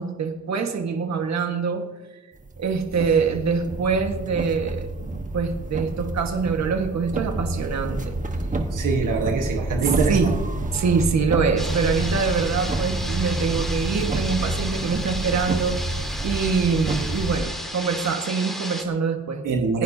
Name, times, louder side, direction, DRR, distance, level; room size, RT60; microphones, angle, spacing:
voice 1, 0.0-1.9 2.6-8.1 10.1-10.3 10.7-15.8 16.2-19.4 19.7-19.8, right 5 dB, 60° right, 4 dB, 1.5 m, -24 dB
sound 1, 2.4-17.4, right 2 dB, 25° right, 1.2 m, -28 dB
voice 2, 8.7-10.3 19.4-19.8, right 4 dB, 75° right, 2 dB, 1.4 m, -24 dB
sound 2, 11.6-18.8, equal, ahead, 2.0 m, -34 dB
28.5 x 11.0 x 2.8 m, 1.2 s
wide cardioid pair, 140°, 31 cm